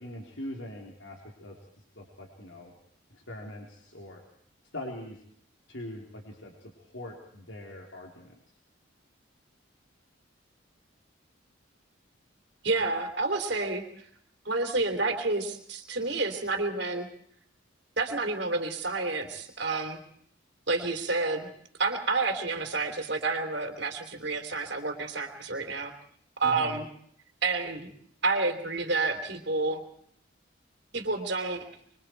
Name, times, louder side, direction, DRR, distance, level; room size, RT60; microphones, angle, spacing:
voice 1, 0.0-1.5 2.0-2.7 3.1-4.2 4.7-5.2 5.7-8.3 26.4-26.8, left 1 dB, 75° left, 0 dB, 3.7 m, -42 dB
voice 2, 12.6-13.8 14.4-17.1 18.0-20.0 20.7-21.5 21.8-25.9 26.4-26.8 27.4-27.9 28.2-29.8 30.9-31.7, right 3 dB, 60° right, 5 dB, 3.3 m, -29 dB
25.5 x 24.5 x 4.7 m, 0.64 s
head